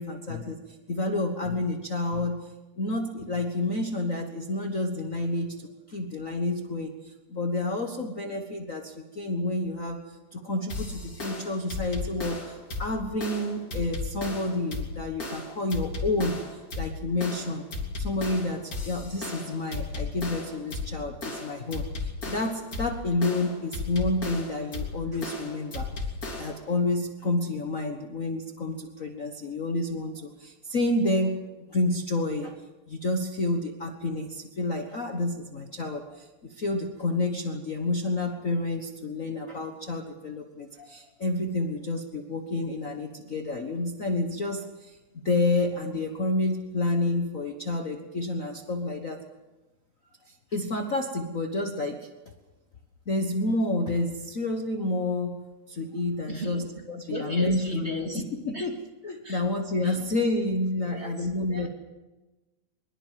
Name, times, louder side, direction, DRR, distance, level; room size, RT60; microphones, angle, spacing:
voice 1, 0.0-2.5 2.8-10.0 10.3-16.4 16.7-17.7 18.0-25.9 26.4-31.4 31.7-32.6 32.9-49.2 50.2-52.1 53.1-58.8 59.0-61.7, left 2 dB, 60° left, 4 dB, 0.8 m, -29 dB
sound 1, 10.7-26.7, left 3 dB, 25° left, 3.6 m, -35 dB
voice 2, 56.3-58.2 58.5-58.7 59.2-59.5 59.8-60.1 60.9-61.7, right 2 dB, 20° right, 2 dB, 2.7 m, -38 dB
23.0 x 22.0 x 7.6 m, 1.1 s
omnidirectional pair, 3.8 m